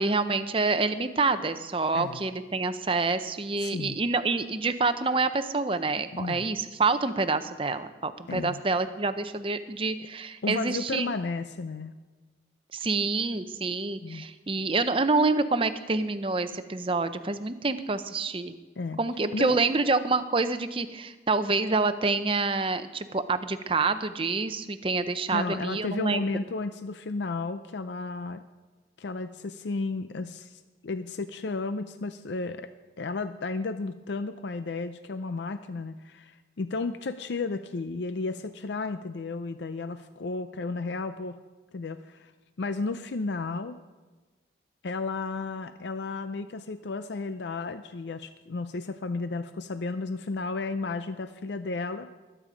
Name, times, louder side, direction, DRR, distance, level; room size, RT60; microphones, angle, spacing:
voice 1, 0.0-11.1 12.7-18.5 19.0-26.2, right 3 dB, 30° right, 11 dB, 0.6 m, -27 dB
voice 2, 3.6-4.0 6.1-6.5 8.3-8.6 10.4-11.9 14.0-14.2 18.8-19.0 19.3-19.6 25.3-28.4 29.0-32.7 33.0-41.4 41.7-42.3 42.6-43.8 44.8-52.1, left 3 dB, 70° left, 10 dB, 0.5 m, -33 dB
21.0 x 9.0 x 5.0 m, 1.2 s
head